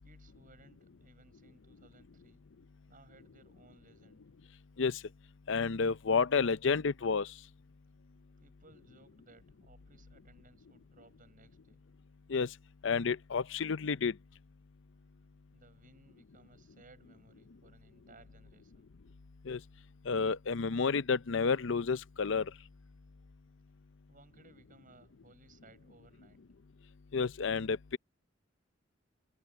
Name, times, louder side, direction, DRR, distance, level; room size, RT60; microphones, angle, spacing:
voice 1, 0.0-2.4 2.9-4.2 8.4-11.8 15.5-18.9 24.1-26.4, right 2 dB, 45° right, 7.1 m, -62 dB
voice 2, 5.5-7.3 12.3-12.5 12.8-14.1 19.5-19.6 20.1-22.5 27.1-28.0, left 5 dB, 65° left, 0.6 m, -30 dB
head